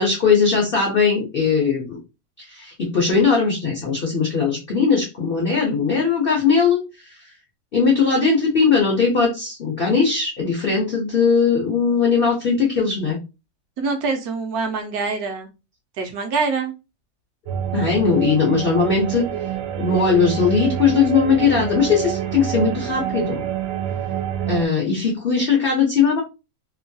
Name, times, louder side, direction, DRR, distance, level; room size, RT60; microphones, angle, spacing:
voice 1, 0.0-2.0 2.5-6.8 7.7-13.2 17.7-19.3 19.8-23.4 24.5-26.2, left 5 dB, 80° left, -1 dB, 0.5 m, -19 dB
voice 2, 13.8-15.5 16.0-16.7, right 4 dB, 70° right, 5 dB, 1.0 m, -24 dB
sound 1, 17.5-24.7, right 10 dB, 90° right, 1.2 m, -27 dB
3.0 x 2.2 x 2.6 m, 0.27 s
omnidirectional pair, 1.9 m